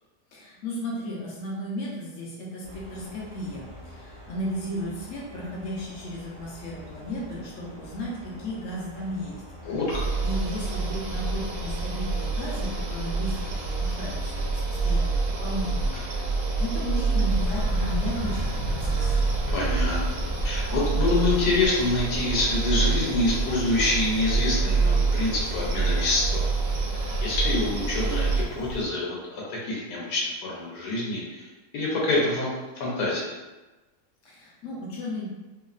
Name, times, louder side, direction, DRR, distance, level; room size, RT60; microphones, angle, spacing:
voice 1, 0.3-9.7 10.2-19.3 34.2-35.3, left 1 dB, 65° left, -4 dB, 0.9 m, -35 dB
sound 1, 2.6-19.4, equal, 25° right, 0.5 m, -46 dB
voice 2, 9.6-10.0 15.9-16.0 19.5-26.5 27.2-31.5 31.7-32.5 32.8-33.3, left 2 dB, 85° left, -4 dB, 1.2 m, -26 dB
sound 2, 9.9-28.4, right 3 dB, 70° right, 0.9 m, -27 dB
Bird vocalization bird call bird song, 17.3-28.8, right 1 dB, 30° left, 0.6 m, -35 dB
3.0 x 2.0 x 2.3 m, 1.1 s
omnidirectional pair, 1.7 m